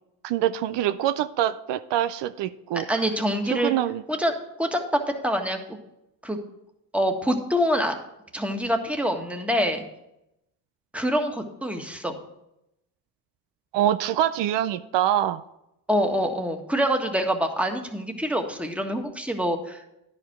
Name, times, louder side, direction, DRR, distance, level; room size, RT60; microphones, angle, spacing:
voice 1, 0.2-2.9 3.5-4.0 13.7-15.4, right 12 dB, 75° right, 13 dB, 0.5 m, -25 dB
voice 2, 2.9-3.7 4.1-5.8 6.2-6.4 6.9-7.9 8.3-9.8 10.9-12.2 15.9-19.9, equal, 5° right, 4 dB, 1.5 m, -25 dB
10.5 x 5.0 x 6.0 m, 0.84 s
supercardioid pair, 60°, 42 cm